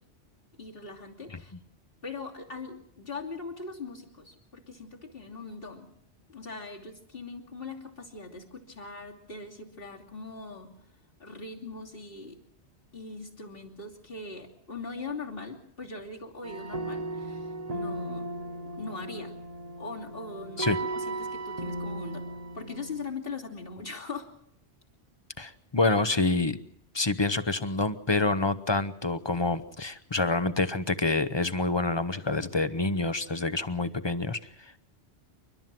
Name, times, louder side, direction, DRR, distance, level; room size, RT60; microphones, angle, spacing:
voice 1, 0.6-1.5 2.0-5.9 6.3-10.7 11.2-12.4 12.9-18.3 18.6-19.3 19.8-22.3 22.5-24.3, left 3 dB, 60° left, -1 dB, 3.2 m, -41 dB
sound 1, 16.4-23.1, right 2 dB, 35° right, 1.2 m, -36 dB
voice 2, 25.4-26.6 26.9-34.4, left 3 dB, 25° left, 13 dB, 0.8 m, -27 dB
29.0 x 12.5 x 7.6 m, 0.73 s
omnidirectional pair, 1.1 m